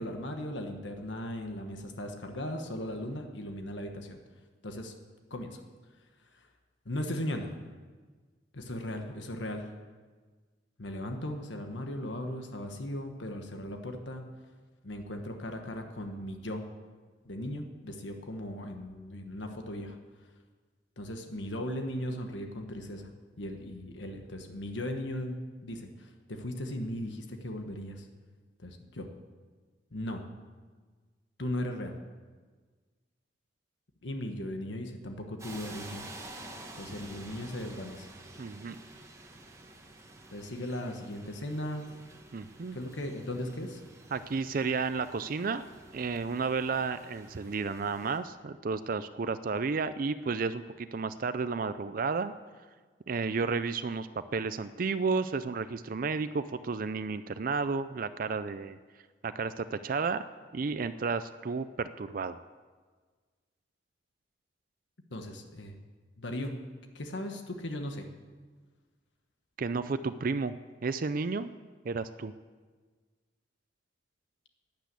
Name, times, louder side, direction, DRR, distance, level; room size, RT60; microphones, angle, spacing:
voice 1, 0.0-4.2 4.6-4.9 5.3-5.6 6.4-6.5 6.8-7.5 8.5-9.7 10.8-14.2 14.8-16.6 17.2-20.0 21.0-23.1 23.4-25.4 25.6-28.1 28.6-29.1 29.9-30.2 31.4-32.0 34.0-36.0 36.8-38.1 40.3-41.8 42.7-43.8 65.1-65.8 66.2-66.6 66.9-68.1, left 1 dB, 85° left, 5 dB, 1.4 m, -37 dB
sound 1, 35.4-48.2, right 2 dB, 15° right, 1.5 m, -50 dB
voice 2, 38.4-38.8 42.3-42.8 44.1-45.6 45.9-52.3 53.1-58.8 59.2-60.2 60.5-62.4 69.6-70.5 70.8-71.5 71.8-72.3, right 4 dB, 50° right, 12 dB, 0.5 m, -32 dB
12.5 x 10.5 x 8.3 m, 1.4 s
head